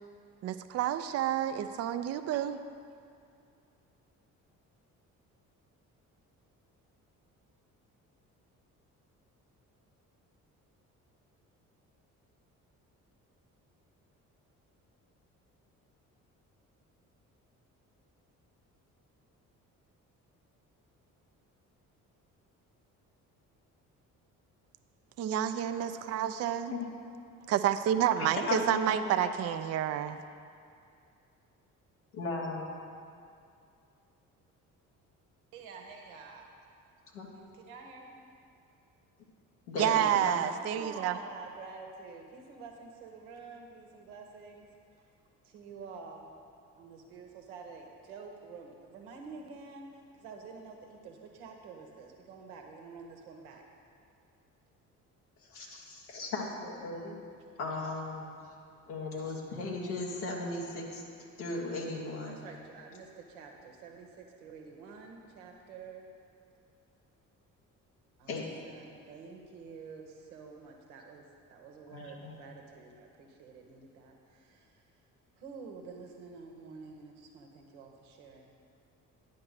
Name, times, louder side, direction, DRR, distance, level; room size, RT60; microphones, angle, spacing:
voice 1, 0.4-2.6 25.2-26.7 27.5-30.2 39.8-41.2, right 10 dB, 40° right, 10 dB, 0.4 m, -29 dB
voice 2, 28.2-29.3 32.1-32.8 37.1-37.3 39.7-40.4 55.5-57.2 57.6-58.4 58.9-61.0 61.4-62.4 68.3-68.5 71.9-72.4, left 3 dB, 85° left, -2 dB, 1.0 m, -36 dB
voice 3, 35.5-36.5 37.3-38.2 39.8-44.7 44.9-45.0 45.4-46.3 46.7-53.6 55.6-55.8 62.3-66.1 68.2-71.2 71.5-74.8 75.4-78.5, right 4 dB, 85° right, 2 dB, 0.9 m, -49 dB
9.6 x 4.4 x 6.4 m, 2.5 s
hypercardioid pair, 45°, 42 cm